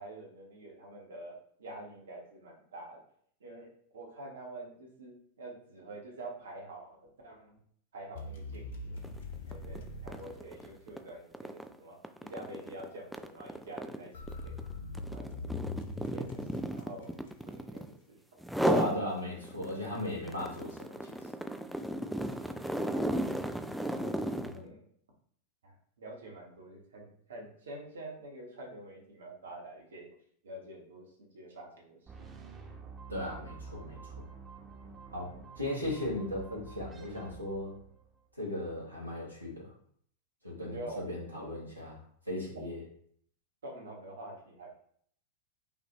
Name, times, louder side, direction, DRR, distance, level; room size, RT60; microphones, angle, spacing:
voice 1, 0.0-3.0 3.4-7.6 7.9-9.0 9.5-14.6 15.1-15.6 16.0-17.1 17.4-18.4 19.8-19.9 22.3-23.4 24.0-24.8 25.6-30.1 30.4-32.0 33.4-33.5 40.6-41.0 41.7-42.0 42.4-42.6 43.6-44.8, right 1 dB, 65° right, -1 dB, 1.2 m, -47 dB
sound 1, 8.1-11.1 14.1-17.6, left 3 dB, 60° left, 0.8 m, -42 dB
sound 2, 9.0-9.2 9.5-18.0 18.4-19.0 19.4-24.6, equal, ahead, 0.3 m, -35 dB
voice 2, 18.6-21.3 24.2-24.6 33.1-34.3 35.1-37.8 38.3-39.7 40.4-42.8, left 1 dB, 90° right, -4 dB, 1.3 m, -37 dB
sound 3, 32.1-38.2, right 5 dB, 20° right, 1.0 m, -49 dB
5.6 x 2.6 x 3.0 m, 0.62 s
figure-of-eight pair, 90°, 0 cm